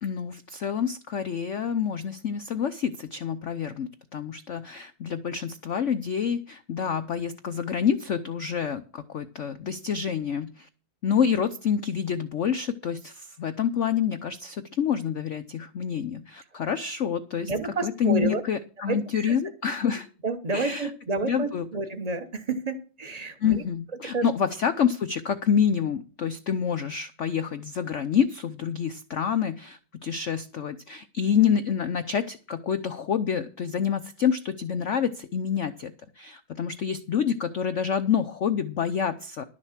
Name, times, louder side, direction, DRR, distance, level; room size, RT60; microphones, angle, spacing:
voice 1, 0.0-10.7 11.0-17.5 17.8-20.1 20.5-20.9 21.2-21.7 23.4-39.4, left 7 dB, 85° left, 10 dB, 0.6 m, -27 dB
voice 2, 17.5-18.4 18.9-19.3 20.2-23.6 24.0-24.3, right 3 dB, 30° right, 9 dB, 0.7 m, -30 dB
11.5 x 6.6 x 7.3 m, 0.37 s
omnidirectional pair, 2.2 m